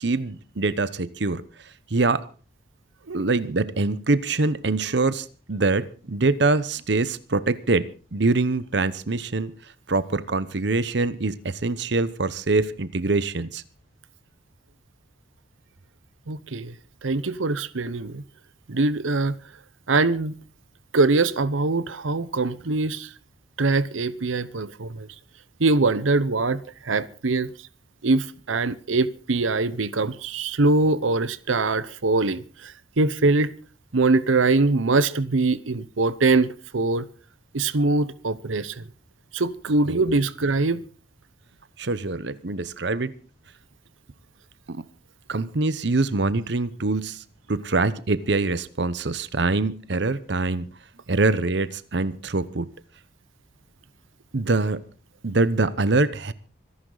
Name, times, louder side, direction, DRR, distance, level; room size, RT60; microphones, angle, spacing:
voice 1, 0.0-1.4 1.9-2.2 3.1-7.9 8.1-9.5 9.9-13.6 39.9-40.2 41.8-43.1 44.7-44.8 45.3-50.7 51.1-52.7 54.3-54.8 55.2-56.3, right 3 dB, 65° right, 0.9 m, -24 dB
voice 2, 16.3-16.7 17.0-18.2 18.7-19.4 19.9-20.4 20.9-23.1 23.6-25.1 25.6-27.5 28.0-33.5 33.9-37.1 37.5-38.8 39.3-40.8, right 3 dB, 90° right, 0.9 m, -23 dB
25.5 x 11.5 x 3.9 m
head